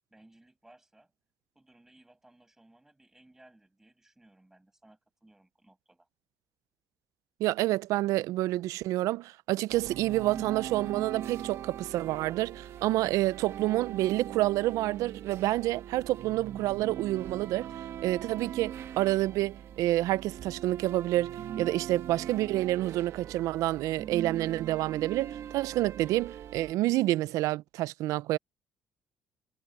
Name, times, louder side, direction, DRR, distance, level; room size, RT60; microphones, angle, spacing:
voice 1, 0.1-1.1 1.6-6.1, right 1 dB, 10° right, 7.0 m, -60 dB
voice 2, 7.4-17.7 18.0-28.4, right 16 dB, 85° right, 0.4 m, -28 dB
sound 1, 9.7-26.7, right 10 dB, 55° right, 1.2 m, -41 dB
cardioid pair, 155°, 6 cm